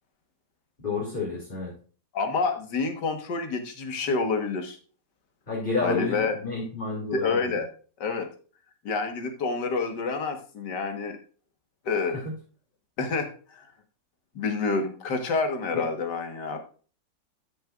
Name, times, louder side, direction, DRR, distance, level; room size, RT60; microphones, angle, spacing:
voice 1, 0.8-1.7 5.5-7.5 15.7-15.8, left 3 dB, 30° left, -4 dB, 2.9 m, -30 dB
voice 2, 2.1-4.8 5.8-6.4 7.1-7.7 8.0-8.3 8.8-11.2 11.9-12.3 13.0-13.6 14.4-16.6, left 4 dB, 75° left, 6 dB, 2.1 m, -28 dB
13.0 x 6.8 x 2.4 m, 0.39 s
omnidirectional pair, 1.9 m